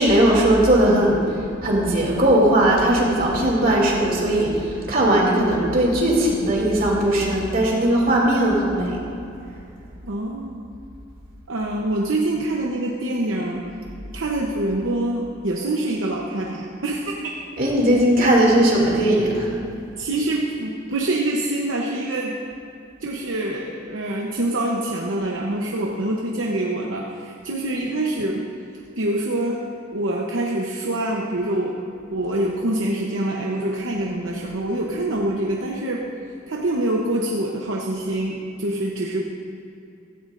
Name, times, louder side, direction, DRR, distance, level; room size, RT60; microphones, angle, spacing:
voice 1, 0.0-9.0 17.6-19.5, right 1 dB, 50° right, -3 dB, 2.7 m, -18 dB
voice 2, 10.0-10.6 11.5-13.7 14.1-17.6 18.2-18.3 20.0-22.4 23.0-28.5 29.0-29.6 29.9-31.7 32.1-36.0 36.5-39.2, right 1 dB, 75° right, -1 dB, 0.9 m, -25 dB
15.5 x 14.0 x 2.6 m, 2.7 s
head